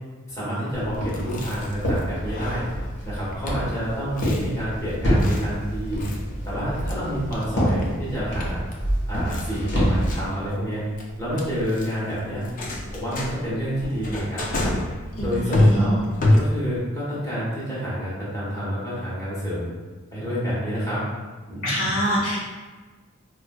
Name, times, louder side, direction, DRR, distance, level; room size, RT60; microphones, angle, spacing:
voice 1, 0.3-2.6 3.0-6.0 6.4-8.6 9.1-10.8 11.2-12.4 12.9-14.7 15.2-16.0 16.4-19.7 20.1-21.0 21.5-22.0, equal, 15° left, -9 dB, 1.1 m, -28 dB
Walk footsteps, 0.7-10.1, equal, 55° left, 1.2 m, -27 dB
Chewing mastication, 0.9-16.9, left 1 dB, 40° left, 0.4 m, -28 dB
voice 2, 15.1-16.1 21.6-22.4, equal, 85° left, -7 dB, 1.2 m, -25 dB
4.3 x 2.5 x 2.2 m, 1.3 s
head